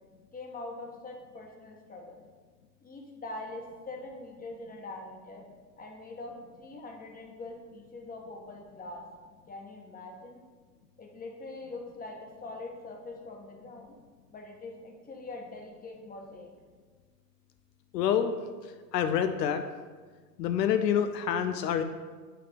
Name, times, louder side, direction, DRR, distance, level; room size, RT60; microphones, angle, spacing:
voice 1, 0.3-2.2 2.8-5.5 5.8-9.0 9.5-10.4 11.0-13.9 14.3-16.5, left 2 dB, 15° left, 1 dB, 1.3 m, -43 dB
voice 2, 17.9-18.3 18.9-19.6 20.4-21.8, left 9 dB, 80° left, 9 dB, 0.6 m, -27 dB
8.7 x 3.3 x 5.1 m, 1.5 s
hypercardioid pair, 95°, 49 cm